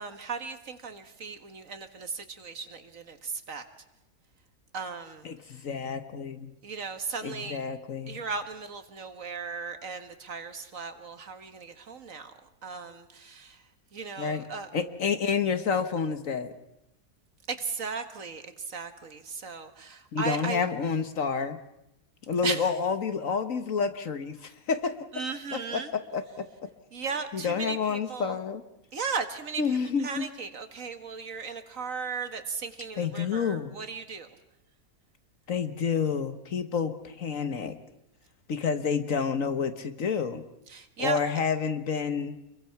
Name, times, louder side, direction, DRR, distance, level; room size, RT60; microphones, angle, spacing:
voice 1, 0.0-3.6 4.7-5.6 6.6-7.6 8.1-12.3 12.6-13.6 13.9-14.7 17.5-20.6 22.4-22.7 25.1-25.9 26.9-28.4 28.9-34.4 40.7-41.2, right 5 dB, 55° right, 8 dB, 1.9 m, -36 dB
voice 2, 5.2-6.5 7.2-8.2 14.2-14.4 14.7-16.5 20.1-21.6 22.3-24.9 25.5-26.4 27.3-28.6 29.6-30.3 33.0-33.8 35.5-37.8 38.5-40.4 41.0-42.4, left 6 dB, 55° left, 10 dB, 1.5 m, -29 dB
28.5 x 22.5 x 5.8 m, 0.87 s
omnidirectional pair, 1.7 m